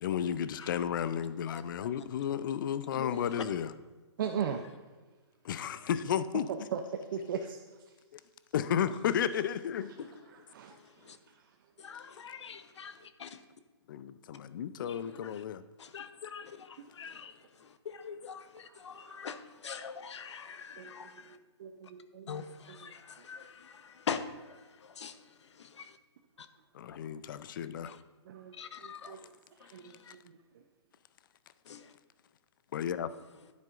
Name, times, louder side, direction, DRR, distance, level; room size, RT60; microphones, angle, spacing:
voice 1, 0.0-3.7 5.4-6.5 8.5-9.9 13.9-15.6 26.7-28.0 32.7-33.1, left 9 dB, 45° left, 14 dB, 0.4 m, -33 dB
voice 2, 1.5-1.9 2.9-3.4 9.1-9.2 10.0-11.2 11.8-13.4 14.8-15.4 15.8-21.4 22.3-26.0 26.4-26.5 26.9-27.0 27.8-28.0 28.5-29.3 29.6-30.2 31.6-31.9 33.2-33.5, left 6 dB, 75° left, 11 dB, 0.8 m, -44 dB
voice 3, 4.2-4.6 6.7-6.8 7.1-7.4 10.5-10.8 19.1-19.2 20.8-20.9 21.6-22.3 28.3-28.5 28.8-29.2 29.6-30.2, right 8 dB, 45° right, 5 dB, 0.6 m, -37 dB
11.0 x 9.3 x 2.5 m, 1.3 s
hypercardioid pair, 155°, 15 cm